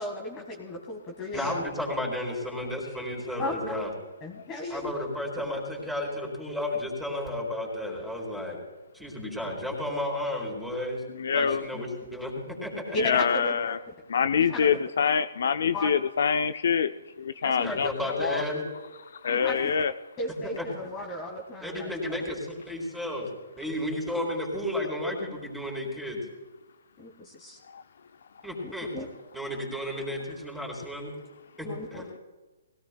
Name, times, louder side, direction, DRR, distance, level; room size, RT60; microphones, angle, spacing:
voice 1, 0.0-1.6 3.4-3.7 4.2-4.9 11.7-11.8 12.9-13.8 14.3-14.7 15.7-15.9 17.4-18.3 19.3-19.7 20.2-21.9 27.0-27.6 28.6-29.1 31.6-32.0, left 1 dB, 20° left, 0 dB, 1.8 m, -35 dB
voice 2, 1.3-3.9 4.7-8.6 8.9-11.0 11.3-13.0 17.6-18.7 20.4-20.7 21.6-23.3 23.6-26.2 28.4-28.9 29.3-31.1 31.6-32.1, left 1 dB, ahead, -2 dB, 4.1 m, -33 dB
voice 3, 11.2-11.6 13.0-13.8 14.1-18.4 19.0-19.9 27.7-27.8, left 6 dB, 65° left, 11 dB, 0.5 m, -26 dB
21.5 x 17.0 x 2.3 m, 1.2 s
hypercardioid pair, 145°, 0 cm